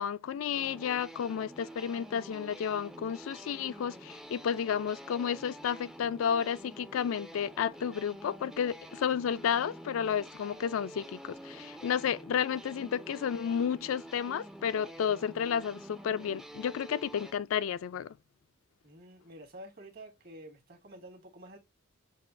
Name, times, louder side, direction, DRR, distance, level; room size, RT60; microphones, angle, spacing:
voice 1, 0.0-18.1, left 8 dB, 85° left, 0.3 m, -32 dB
sound 1, 0.5-17.3, right 1 dB, 5° right, 0.3 m, -48 dB
voice 2, 18.8-21.6, right 1 dB, 50° right, 1.4 m, -49 dB
6.4 x 2.3 x 2.5 m
head